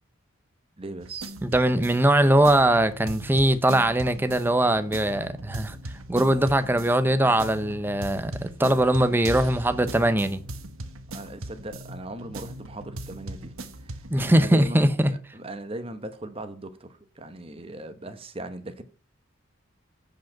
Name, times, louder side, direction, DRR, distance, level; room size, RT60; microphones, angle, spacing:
voice 1, 0.8-1.3 11.1-18.8, right 2 dB, 25° right, 1.0 m, -38 dB
sound 1, 1.0-14.7, right 1 dB, 85° right, 1.1 m, -39 dB
voice 2, 1.4-5.8 6.1-10.4 14.1-15.1, right 1 dB, 10° right, 0.6 m, -21 dB
8.2 x 5.1 x 7.2 m
head